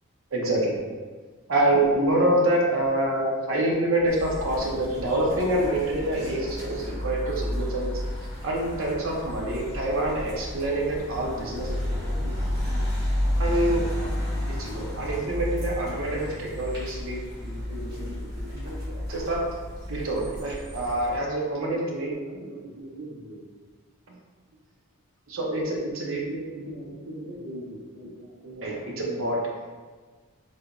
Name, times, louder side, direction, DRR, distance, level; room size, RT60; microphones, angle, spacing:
voice 1, 0.3-0.8 1.5-8.0 8.4-12.3 12.6-12.8 13.4-19.5 19.9-23.4 25.3-29.4, right 1 dB, 65° right, -2 dB, 0.6 m, -27 dB
sound 1, 4.1-21.2, left 1 dB, 45° right, 1.2 m, -32 dB
3.3 x 2.7 x 2.5 m, 1.4 s
head